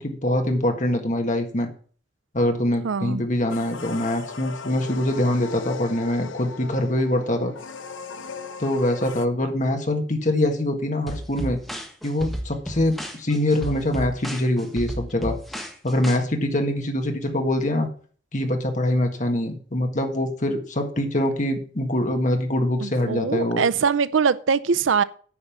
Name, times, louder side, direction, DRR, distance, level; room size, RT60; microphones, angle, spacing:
voice 1, 0.0-1.7 2.3-7.5 8.6-11.6 12.0-15.4 15.8-17.9 18.3-23.6, left 1 dB, 40° left, 1.6 m, -24 dB
voice 2, 2.8-3.2 22.8-25.0, right 5 dB, 80° right, 0.5 m, -22 dB
sound 1, 3.5-9.3, left 5 dB, 85° left, 0.8 m, -37 dB
sound 2, 11.1-16.2, equal, ahead, 1.4 m, -33 dB
9.7 x 5.5 x 7.0 m
head